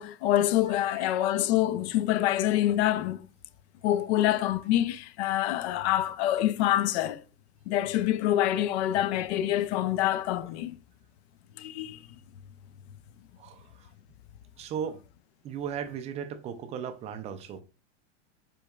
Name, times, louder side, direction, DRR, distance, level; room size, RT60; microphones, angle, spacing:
voice 1, 0.0-3.3 3.8-7.2 7.7-10.8 11.6-12.0, left 13 dB, 65° left, 0.6 m, -26 dB
voice 2, 0.9-1.3 13.4-13.9 14.6-15.0 15.4-17.6, right 8 dB, 20° right, 0.3 m, -37 dB
5.1 x 4.6 x 2.3 m
supercardioid pair, 135°, 36 cm